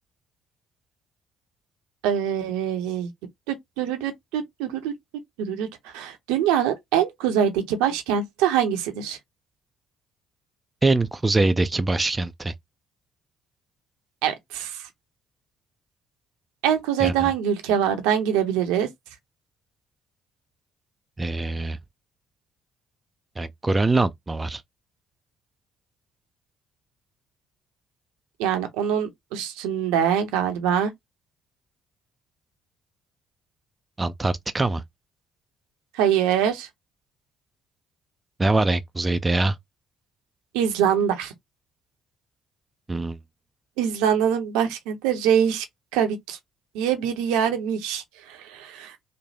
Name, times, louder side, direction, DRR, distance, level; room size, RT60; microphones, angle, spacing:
voice 1, 2.0-3.1 3.5-4.9 5.4-9.2 14.2-14.9 16.6-18.9 28.4-30.9 35.9-36.7 40.5-41.3 43.8-45.6 45.9-46.4 46.7-49.0, right 9 dB, 70° right, 0.6 m, -24 dB
voice 2, 10.8-12.5 17.0-17.3 21.2-21.8 23.4-24.6 34.0-34.8 38.4-39.6 42.9-43.2, right 2 dB, 20° right, 0.3 m, -23 dB
3.1 x 2.1 x 2.7 m
figure-of-eight pair, 50°, 0 cm